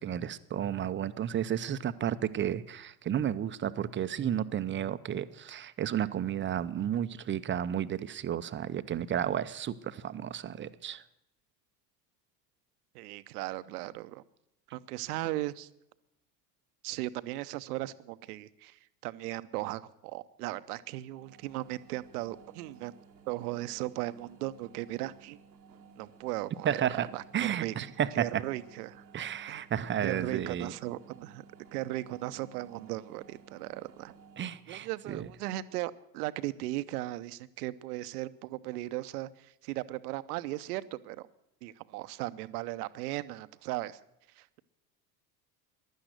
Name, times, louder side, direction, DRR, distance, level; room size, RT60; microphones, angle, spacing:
voice 1, 0.0-11.0 26.6-27.1 27.3-28.4 29.1-30.7 34.4-35.3, right 10 dB, 25° right, 14 dB, 0.6 m, -32 dB
voice 2, 12.9-14.2 14.7-15.7 16.8-22.9 23.3-25.4 26.0-27.7 28.1-29.0 29.5-29.6 30.0-31.4 31.7-34.1 34.7-41.3 41.6-44.0 44.3-44.6, right 17 dB, 65° right, 14 dB, 0.8 m, -37 dB
sound 1, 21.1-34.7, right 5 dB, 90° right, 1.2 m, -56 dB
15.5 x 11.0 x 6.5 m, 0.83 s
hypercardioid pair, 75°, 50 cm